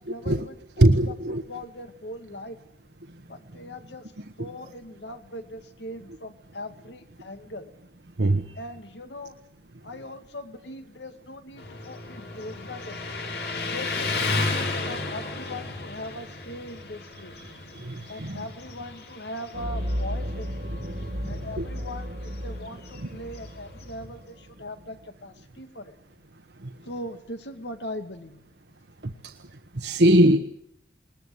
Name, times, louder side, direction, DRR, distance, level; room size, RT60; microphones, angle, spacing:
voice 1, 0.0-2.6 3.3-4.1 4.4-7.7 8.6-9.4 9.8-13.1 13.7-17.4 18.1-20.6 21.3-26.0 26.8-28.4, left 1 dB, 85° left, 8 dB, 2.3 m, -40 dB
voice 2, 0.8-1.4 8.2-8.6 17.4-18.4 21.6-21.7 26.6-26.7 29.0-29.3 29.7-30.4, right 1 dB, 75° right, 6 dB, 1.2 m, -21 dB
Motorcycle, 11.6-24.2, left 3 dB, 65° left, 3.7 m, -34 dB
sound 1, 19.5-24.3, equal, 60° right, 1.8 m, -34 dB
21.0 x 20.0 x 9.6 m, 0.73 s
head